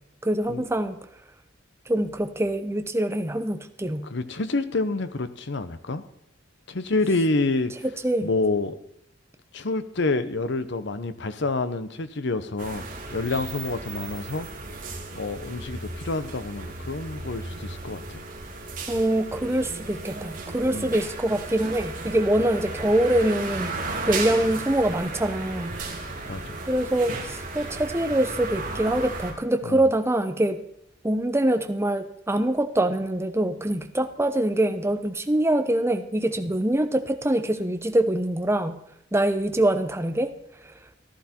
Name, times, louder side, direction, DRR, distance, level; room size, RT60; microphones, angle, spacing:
voice 1, 0.2-1.0 1.9-4.1 8.0-8.3 18.9-23.7 24.1-25.7 26.7-30.6 31.0-38.8 39.1-40.3, right 1 dB, 15° right, 8 dB, 0.8 m, -24 dB
voice 2, 4.0-6.0 6.7-7.7 8.2-8.8 9.5-12.8 13.1-14.5 15.1-18.2 20.7-21.0 26.3-26.6 29.7-29.8, left 3 dB, 65° left, 12 dB, 0.9 m, -28 dB
sound 1, 12.6-29.3, right 3 dB, 45° right, 2.7 m, -35 dB
14.5 x 12.0 x 4.5 m, 0.73 s
head